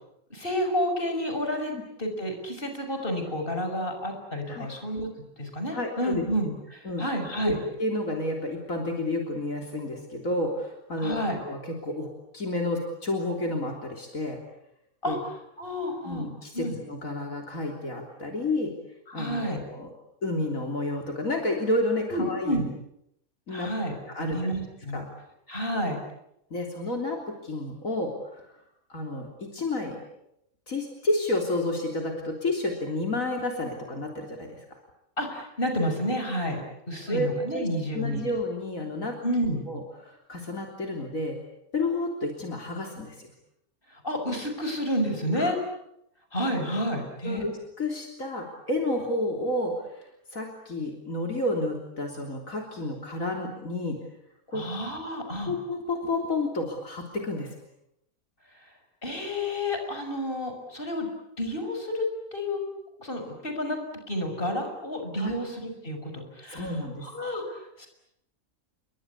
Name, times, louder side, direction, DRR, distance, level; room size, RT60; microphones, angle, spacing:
voice 1, 0.3-1.7 2.0-5.1 5.4-7.6 11.0-11.4 15.0-15.2 15.6-16.3 16.5-16.8 19.1-19.6 22.1-22.7 23.5-25.0 25.5-26.0 35.2-38.3 39.2-39.6 43.9-45.6 46.3-47.4 54.5-55.5 59.0-61.1 61.4-62.6 63.0-63.8 64.1-66.7 67.0-67.9, equal, 40° left, 5 dB, 6.3 m, -30 dB
voice 2, 5.7-6.2 6.9-7.1 7.4-14.4 15.1-15.2 16.0-18.8 19.1-19.9 20.2-22.6 23.5-23.7 24.1-24.5 24.9-25.0 26.5-28.5 28.9-30.0 30.7-34.7 37.1-37.7 37.9-39.2 39.7-41.4 41.7-43.3 45.4-45.5 47.2-54.0 54.5-54.7 55.5-57.6 65.2-65.3 66.5-67.1, left 2 dB, 70° left, 2 dB, 3.9 m, -30 dB
30.0 x 23.5 x 8.4 m, 0.80 s
omnidirectional pair, 1.5 m